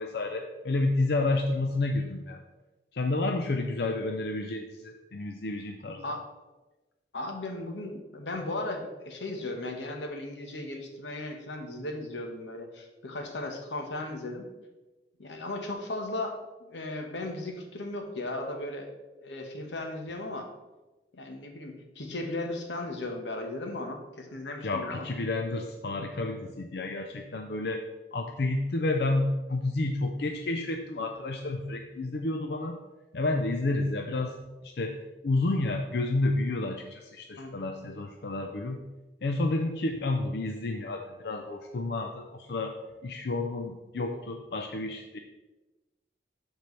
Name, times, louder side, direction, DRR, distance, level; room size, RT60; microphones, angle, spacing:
voice 1, 0.0-2.4 2.9-6.0 24.6-27.8 28.1-32.8 33.1-34.3 34.6-34.9 35.2-38.8 39.2-42.8 43.0-45.2, left 2 dB, 60° left, 4 dB, 0.5 m, -30 dB
voice 2, 7.1-14.5 15.2-16.4 16.7-18.9 19.2-20.5 21.1-25.1 37.4-37.7, left 2 dB, 90° left, 4 dB, 1.2 m, -36 dB
12.0 x 4.5 x 3.2 m, 1.1 s
head